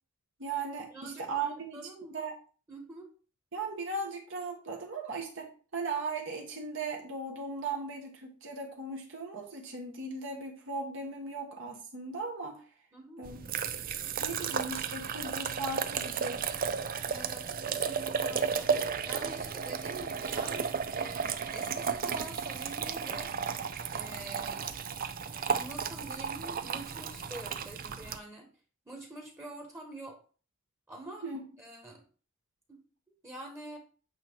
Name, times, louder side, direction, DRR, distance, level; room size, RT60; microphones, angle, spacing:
voice 1, 0.4-1.8 2.1-2.4 3.5-12.6 13.2-13.4 14.2-16.5 31.2-31.4, right 3 dB, 55° right, 0 dB, 1.5 m, -37 dB
voice 2, 0.9-2.2 2.7-3.1 12.9-13.2 17.0-18.7 19.0-23.4 23.9-24.7 25.5-28.5 28.8-30.2 30.9-31.3 31.6-32.0 32.7-33.8, right 1 dB, 10° right, 1 dB, 1.3 m, -46 dB
sound 1, 13.2-28.2, right 6 dB, 40° right, 0.5 m, -34 dB
8.7 x 3.0 x 5.1 m, 0.38 s
head